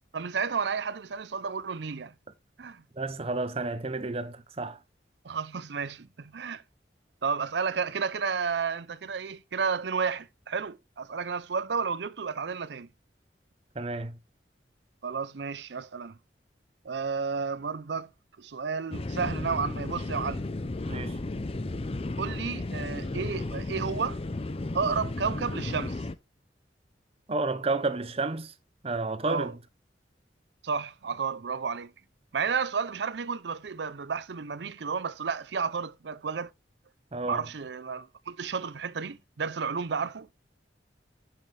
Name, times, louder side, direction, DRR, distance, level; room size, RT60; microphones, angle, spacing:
voice 1, 0.1-2.1 2.6-2.8 5.2-6.6 7.2-12.9 15.0-16.2 16.8-18.1 18.4-20.5 22.2-24.2 24.7-26.0 29.3-29.5 30.6-31.9 32.3-36.5 37.3-40.3, right 5 dB, 70° right, 0.6 m, -32 dB
voice 2, 3.0-4.8 13.8-14.2 20.9-21.2 27.3-28.5 28.8-29.6 37.1-37.4, right 3 dB, 35° right, 0.8 m, -31 dB
sound 1, 18.9-26.2, left 2 dB, 35° left, 0.5 m, -34 dB
7.8 x 7.3 x 3.3 m
head